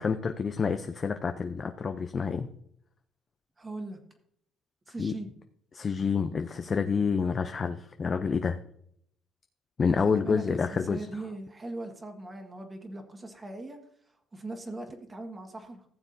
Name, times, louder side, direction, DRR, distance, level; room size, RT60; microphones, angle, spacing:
voice 1, 0.0-2.5 5.0-5.1 5.7-8.6 9.8-11.0, left 5 dB, 35° left, 7 dB, 0.6 m, -28 dB
voice 2, 3.6-4.0 4.9-5.3 9.8-10.6 10.9-13.8 14.3-15.8, right 2 dB, 20° right, 5 dB, 1.7 m, -40 dB
15.5 x 7.1 x 2.7 m, 0.68 s
cardioid pair, 105°, 0 cm